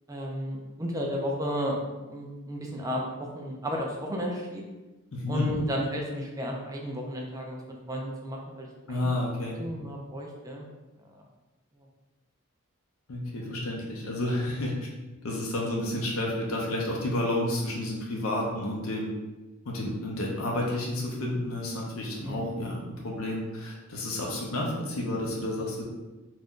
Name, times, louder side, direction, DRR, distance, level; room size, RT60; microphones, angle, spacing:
voice 1, 0.1-4.6 5.3-9.1 9.5-10.7 22.2-22.6, equal, 15° right, -1 dB, 0.4 m, -33 dB
voice 2, 5.1-5.5 8.9-9.6 13.1-14.8 15.2-19.1 19.7-25.8, left 1 dB, 85° left, -2 dB, 0.6 m, -30 dB
2.5 x 2.2 x 3.6 m, 1.1 s
head